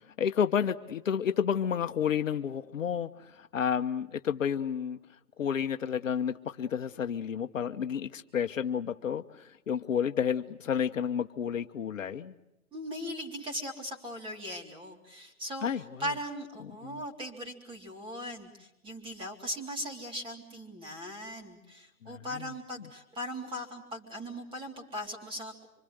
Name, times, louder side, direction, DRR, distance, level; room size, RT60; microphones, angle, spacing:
voice 1, 0.2-5.0 5.4-12.3 15.6-16.0 16.8-17.0 22.0-22.2, left 8 dB, 65° left, 9 dB, 1.1 m, -31 dB
voice 2, 12.7-25.5, equal, 10° right, 3 dB, 3.5 m, -39 dB
26.0 x 25.0 x 8.0 m, 0.87 s
figure-of-eight pair, 135°, 43 cm